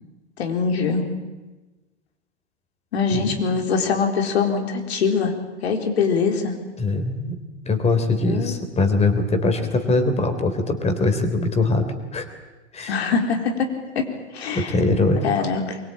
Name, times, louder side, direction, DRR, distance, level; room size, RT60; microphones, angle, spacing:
voice 1, 0.4-1.0 2.9-5.3 5.6-6.5 8.2-8.5 12.9-13.7 14.0-14.1 14.3-14.7 15.2-15.8, left 5 dB, 65° left, 4 dB, 4.1 m, -23 dB
voice 2, 6.8-7.4 7.7-11.9 12.1-12.3 12.7-13.0 14.5-15.2, left 2 dB, 20° left, 8 dB, 3.7 m, -22 dB
24.0 x 22.5 x 8.9 m, 1.2 s
figure-of-eight pair, 95°, 35 cm